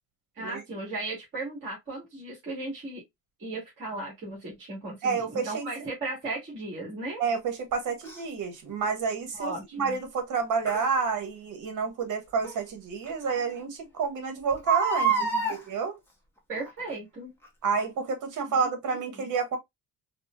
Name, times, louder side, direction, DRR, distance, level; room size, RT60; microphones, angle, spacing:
voice 1, 0.3-3.0 3.4-7.2 9.3-10.0 15.1-15.6 16.5-17.3 18.5-18.7 19.1-19.3, right 2 dB, 35° right, 1.6 m, -36 dB
voice 2, 5.0-5.7 7.2-16.0 17.6-19.6, right 5 dB, 65° right, 1.1 m, -29 dB
Crying sobbing, 8.0-8.2 10.7-10.8 12.4-12.5 13.1-13.2 13.4-13.5 14.5-15.6 16.5-16.9 17.4-17.5, right 5 dB, 5° left, 0.7 m, -26 dB
4.1 x 2.1 x 2.3 m
cardioid pair, 150°, 33 cm